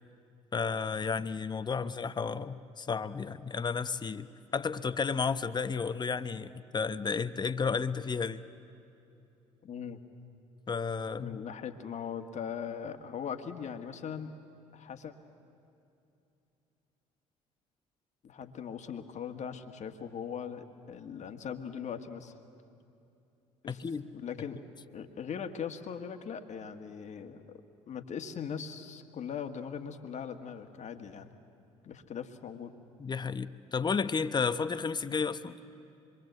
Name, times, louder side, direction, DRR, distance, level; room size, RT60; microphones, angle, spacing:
voice 1, 0.5-4.3 4.5-8.4 10.7-11.4 23.7-24.1 33.0-35.6, left 5 dB, 25° left, 12 dB, 0.9 m, -32 dB
voice 2, 9.6-10.0 11.2-14.4 14.7-15.1 18.2-22.3 23.6-23.8 24.1-24.6 24.9-27.6 27.9-31.3 31.8-32.7, left 7 dB, 50° left, 6 dB, 1.8 m, -40 dB
25.5 x 23.0 x 8.1 m, 2.7 s
hypercardioid pair, 60°, 16 cm